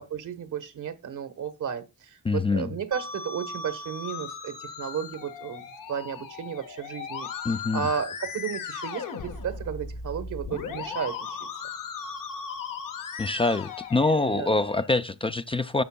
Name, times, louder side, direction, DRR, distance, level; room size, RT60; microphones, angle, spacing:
voice 1, 0.0-7.3 7.7-11.4 14.3-14.5, right 7 dB, 70° right, 1.3 m, -33 dB
voice 2, 2.2-2.7 7.4-7.9 13.2-15.8, left 3 dB, 15° left, 0.4 m, -25 dB
Musical instrument, 2.9-14.9, left 5 dB, 80° left, 1.5 m, -37 dB
12.0 x 7.0 x 2.3 m
cardioid pair, 90°, 32 cm